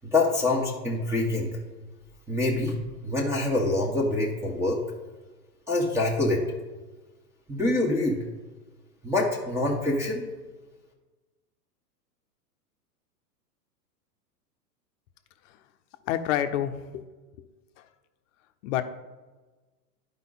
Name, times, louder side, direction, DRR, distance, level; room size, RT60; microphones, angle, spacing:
voice 1, 0.1-1.5 2.3-2.8 3.0-4.8 5.7-6.4 7.5-8.2 9.0-10.3, left 2 dB, 5° right, -2 dB, 1.5 m, -25 dB
voice 2, 16.1-17.0 18.6-18.8, left 11 dB, 50° left, 9 dB, 0.9 m, -27 dB
11.0 x 5.0 x 4.1 m, 1.2 s
hypercardioid pair, 120°, 49 cm